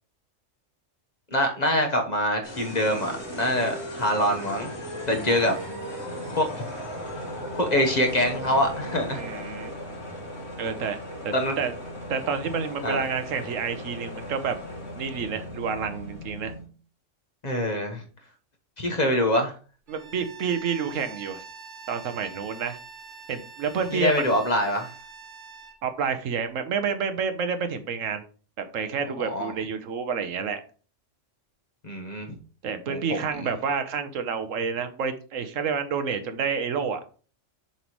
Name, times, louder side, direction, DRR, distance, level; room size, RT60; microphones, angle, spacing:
voice 1, 1.3-4.7 5.1-5.5 6.4-6.7 7.6-9.2 11.3-11.6 12.8-13.0 17.4-18.0 18.8-19.5 23.9-24.9 29.2-29.5 31.8-32.4 32.9-33.5, left 1 dB, 35° left, 4 dB, 1.2 m, -25 dB
sound 1, 2.4-16.7, equal, 60° left, 2.6 m, -37 dB
voice 2, 5.1-5.8 9.1-9.7 10.6-11.0 11.2-11.7 12.1-14.6 14.9-16.5 19.9-21.4 21.9-22.8 23.3-24.3 25.8-28.2 28.7-30.6 32.6-37.0, right 6 dB, 90° right, 9 dB, 1.3 m, -29 dB
Bowed string instrument, 19.9-25.8, right 5 dB, 40° right, 1.3 m, -45 dB
7.2 x 5.6 x 3.1 m, 0.39 s
omnidirectional pair, 1.3 m